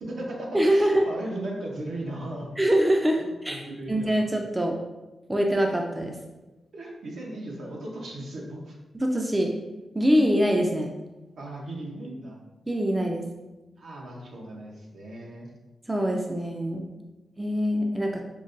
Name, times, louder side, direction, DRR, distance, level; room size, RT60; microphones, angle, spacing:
voice 1, 0.0-2.5 3.2-4.2 6.7-8.8 11.4-12.4 13.8-15.5, right 1 dB, 75° right, -1 dB, 0.8 m, -36 dB
voice 2, 0.5-1.0 2.6-3.6 3.9-4.8 5.3-6.2 8.9-9.5 9.9-10.9 12.7-13.3 15.9-16.8 17.4-18.2, equal, 15° right, 2 dB, 0.3 m, -24 dB
5.1 x 2.2 x 2.5 m, 1.1 s
wide cardioid pair, 120°, 0 cm